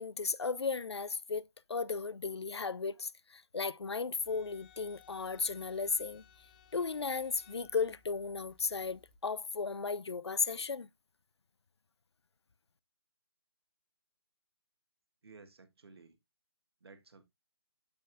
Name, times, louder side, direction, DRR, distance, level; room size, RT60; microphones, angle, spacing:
voice 1, 0.0-6.2 6.7-10.9, left 5 dB, 90° left, 0.5 m, -35 dB
sound 1, 4.1-9.2, left 8 dB, 25° left, 1.1 m, -61 dB
voice 2, 15.2-16.2 16.8-17.2, right 4 dB, 70° right, 1.5 m, -56 dB
12.5 x 4.2 x 2.6 m
figure-of-eight pair, 155°, 14 cm